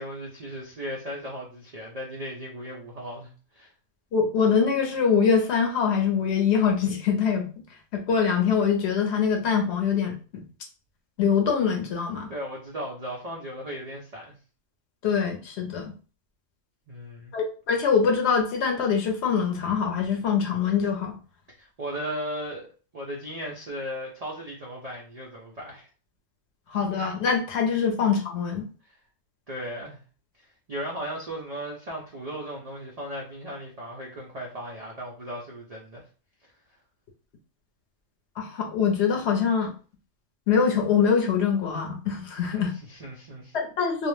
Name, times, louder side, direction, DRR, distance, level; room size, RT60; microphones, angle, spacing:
voice 1, 0.0-3.7 12.3-14.3 16.9-17.3 21.6-22.7 22.9-25.9 28.8-29.0 29.5-30.0 30.4-36.0 42.5-43.6, equal, 90° right, -2 dB, 0.3 m, -36 dB
voice 2, 4.1-7.5 7.9-10.4 11.2-12.3 15.0-15.9 17.3-21.2 26.7-28.6 38.4-39.7 40.5-42.8 43.5-44.1, left 6 dB, 65° left, 2 dB, 0.8 m, -24 dB
2.5 x 2.0 x 3.1 m, 0.37 s
omnidirectional pair, 1.4 m